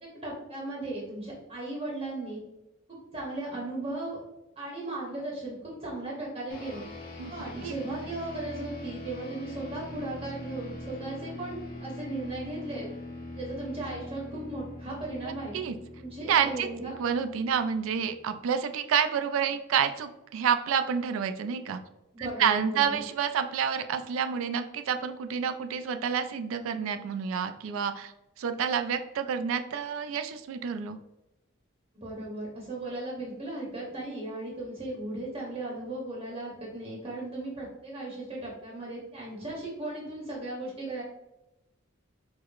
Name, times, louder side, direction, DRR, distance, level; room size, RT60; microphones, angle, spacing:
voice 1, 0.2-2.4 2.9-4.2 4.6-6.8 7.3-12.9 13.3-15.5 16.0-16.9 22.1-23.0 31.9-41.0, right 2 dB, 30° right, -5 dB, 0.8 m, -36 dB
sound 1, 6.5-18.2, left 1 dB, 45° left, 0.6 m, -42 dB
voice 2, 15.2-15.8 16.3-16.7 17.0-21.8 22.2-28.1 28.4-31.0, right 7 dB, 75° right, 9 dB, 0.3 m, -29 dB
4.6 x 2.0 x 2.3 m, 0.92 s
head